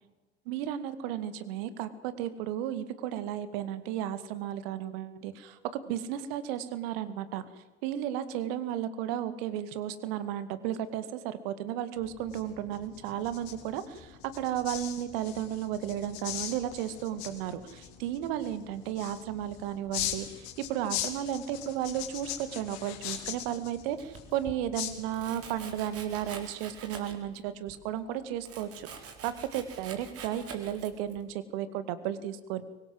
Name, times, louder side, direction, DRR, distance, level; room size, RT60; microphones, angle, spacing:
voice 1, 0.5-5.6 5.9-7.4 7.8-32.6, right 11 dB, 60° right, 13 dB, 2.2 m, -34 dB
sound 1, 12.0-25.5, left 11 dB, 55° left, 3.6 m, -41 dB
Domestic sounds home sounds, 24.0-24.6 25.1-27.4 27.7-31.2, right 6 dB, 45° right, 4.6 m, -46 dB
24.5 x 20.5 x 7.8 m, 1.1 s
figure-of-eight pair, 65°, 33 cm